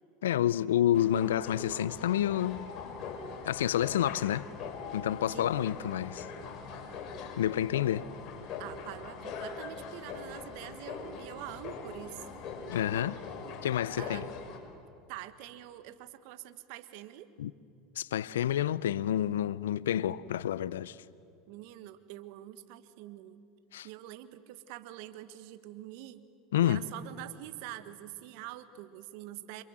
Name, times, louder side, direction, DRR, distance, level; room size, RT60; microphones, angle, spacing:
voice 1, 0.2-2.7 3.4-4.5 4.9-6.3 7.4-8.1 12.7-13.2 13.6-14.3 17.4-17.5 18.0-21.0 23.7-23.9 26.5-26.8, left 11 dB, 80° left, 0.6 m, -29 dB
sound 1, 0.9-14.6, left 5 dB, 50° left, 5.5 m, -42 dB
voice 2, 8.6-12.2 14.0-14.3 15.1-17.3 21.5-23.4 23.8-26.2 26.6-29.6, right 14 dB, 65° right, 1.5 m, -45 dB
28.5 x 26.0 x 7.5 m
hypercardioid pair, 85°, 0 cm